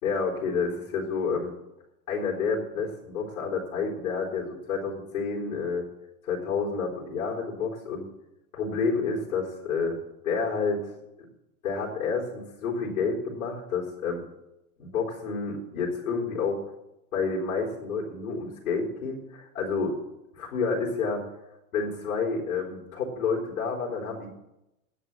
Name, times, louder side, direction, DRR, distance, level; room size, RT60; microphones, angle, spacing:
voice 1, 0.0-1.5 2.1-5.9 6.2-8.1 8.5-10.0 10.2-10.8 11.6-14.3 14.8-16.7 17.1-20.0 20.3-21.2 21.7-24.3, left 5 dB, 85° left, -4 dB, 4.1 m, -29 dB
10.0 x 8.3 x 9.2 m, 0.91 s
hypercardioid pair, 100°, 42 cm